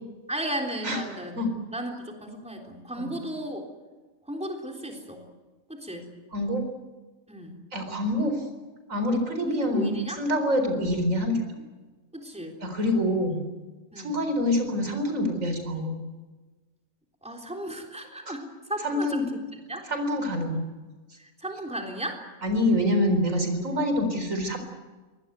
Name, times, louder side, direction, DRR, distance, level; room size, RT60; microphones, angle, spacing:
voice 1, 0.3-1.4 1.7-3.7 4.3-5.2 5.7-6.1 7.3-7.6 9.4-10.2 12.1-12.6 13.9-14.1 17.2-19.9 21.2-22.2, right 1 dB, 5° right, 1 dB, 3.6 m, -35 dB
voice 2, 6.3-6.6 7.7-8.5 8.9-11.6 12.6-13.4 14.0-16.0 18.3-18.4 18.8-19.2 19.9-20.6 22.4-24.6, left 1 dB, 70° right, 6 dB, 4.7 m, -26 dB
23.5 x 19.5 x 9.4 m, 1.3 s
omnidirectional pair, 1.4 m